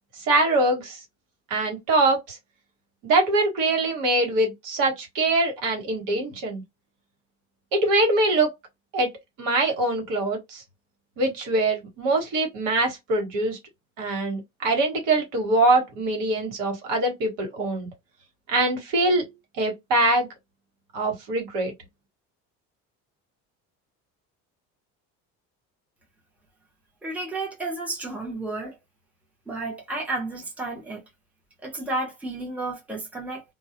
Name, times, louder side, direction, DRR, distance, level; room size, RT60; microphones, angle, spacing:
voice 1, 0.3-1.0 1.5-2.4 3.0-6.6 7.7-8.5 8.9-9.1 9.4-10.6 11.2-13.6 14.0-17.9 18.5-19.3 19.6-20.3 20.9-21.7, right 2 dB, 80° right, 1.3 m, -23 dB
voice 2, 27.0-28.8 29.5-31.0 31.6-33.4, right 2 dB, 5° right, 0.7 m, -32 dB
2.3 x 2.1 x 2.8 m
cardioid pair, 135°, 31 cm